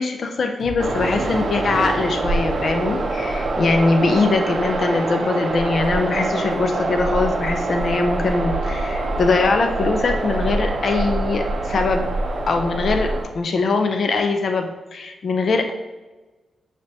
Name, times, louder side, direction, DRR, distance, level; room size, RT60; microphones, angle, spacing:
voice 1, 0.0-12.0 12.5-15.7, left 3 dB, 55° left, 5 dB, 0.4 m, -22 dB
sound 1, 0.6-7.6 8.1-8.2, left 2 dB, 20° left, 1.4 m, -39 dB
sound 2, 0.8-13.2, right 2 dB, 45° right, 0.5 m, -24 dB
5.1 x 3.3 x 2.7 m, 1.2 s
wide cardioid pair, 125°, 0 cm